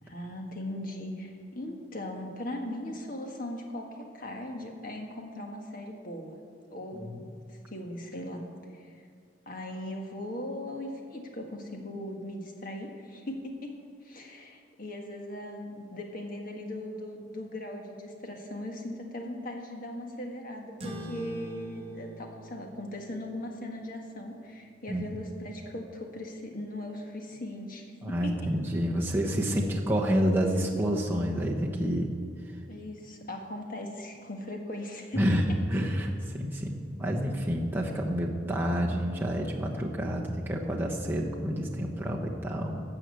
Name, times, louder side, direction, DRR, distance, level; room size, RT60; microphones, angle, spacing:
voice 1, 0.0-6.4 6.7-8.4 8.7-9.0 9.4-13.8 14.0-28.5 32.7-35.4 35.7-35.9, left 1 dB, 45° left, 2 dB, 1.6 m, -39 dB
sound 1, 20.8-25.7, equal, 30° right, 1.2 m, -45 dB
voice 2, 28.0-32.1 35.2-35.4 35.7-42.8, equal, 10° right, -2 dB, 1.0 m, -29 dB
13.0 x 6.3 x 8.3 m, 2.2 s
head